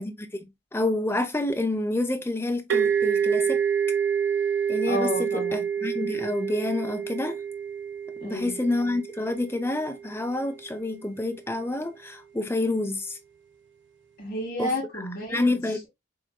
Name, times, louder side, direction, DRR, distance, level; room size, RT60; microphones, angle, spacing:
voice 1, 0.0-3.6 4.7-7.4 8.2-13.2 14.6-14.7 15.3-15.8, left 2 dB, 10° left, 0.7 m, -28 dB
sound 1, 2.7-10.2, right 7 dB, 65° right, 0.9 m, -27 dB
voice 2, 4.9-5.6 8.2-8.6 14.2-15.5, left 1 dB, 50° left, 2.8 m, -31 dB
6.3 x 3.6 x 2.2 m
head